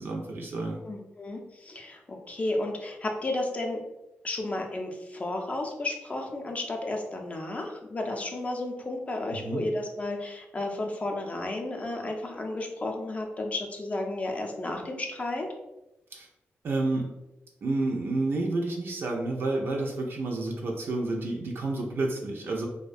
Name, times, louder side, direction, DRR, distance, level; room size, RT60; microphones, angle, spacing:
voice 1, 0.0-0.8 9.3-9.6 16.1-16.3 16.6-17.1 17.6-22.7, right 2 dB, 60° right, -1 dB, 0.4 m, -30 dB
voice 2, 0.9-3.8 4.2-15.5, left 2 dB, 30° left, 2 dB, 0.4 m, -33 dB
2.3 x 2.1 x 2.5 m, 0.97 s
cardioid pair, 85°, 4 cm